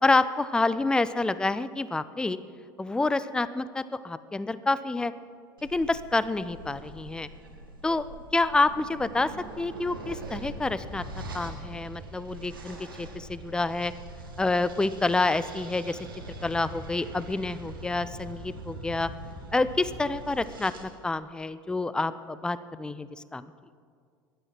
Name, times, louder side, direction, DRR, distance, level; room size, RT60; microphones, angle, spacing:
voice 1, 0.0-2.4 2.8-5.1 5.7-7.3 7.8-9.3 9.6-11.0 11.3-13.9 14.4-16.0 16.4-19.1 19.5-23.5, left 3 dB, 5° left, 15 dB, 0.5 m, -28 dB
sound 1, 5.6-20.8, right 1 dB, 75° right, 1.8 m, -42 dB
15.5 x 12.0 x 5.8 m, 2.1 s
figure-of-eight pair, 75°, 12 cm